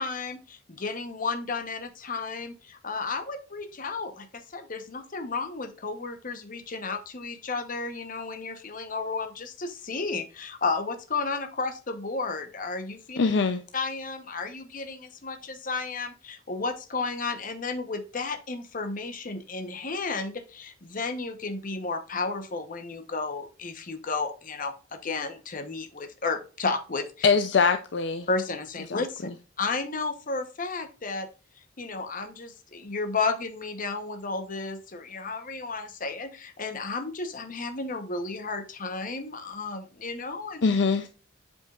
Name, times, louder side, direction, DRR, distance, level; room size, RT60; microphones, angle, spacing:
voice 1, 0.0-13.2 13.7-27.1 28.3-29.3 29.6-31.3 31.8-40.6, left 4 dB, 45° left, 1.0 m, -33 dB
voice 2, 13.2-13.6 27.2-28.3 28.9-29.0 40.6-41.1, left 5 dB, 65° left, 0.5 m, -23 dB
7.8 x 5.4 x 2.4 m
head